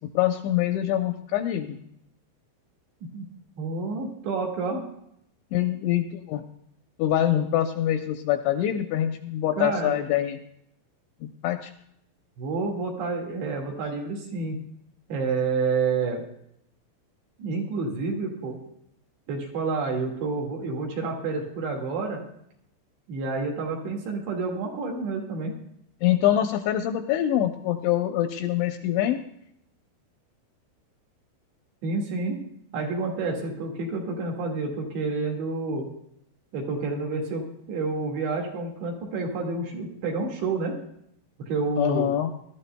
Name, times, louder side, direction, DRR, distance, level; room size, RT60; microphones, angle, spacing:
voice 1, 0.1-1.8 5.5-6.4 7.0-10.4 11.2-11.7 26.0-29.2 41.8-42.3, left 12 dB, 80° left, 6 dB, 2.7 m, -24 dB
voice 2, 3.6-4.8 9.6-10.0 12.4-14.6 15.1-16.2 17.4-18.6 19.3-22.2 23.1-25.5 31.8-32.4 32.7-35.9 36.5-40.8 41.5-42.1, right 4 dB, 65° right, 0 dB, 3.9 m, -29 dB
20.5 x 13.0 x 2.2 m, 0.74 s
omnidirectional pair, 5.7 m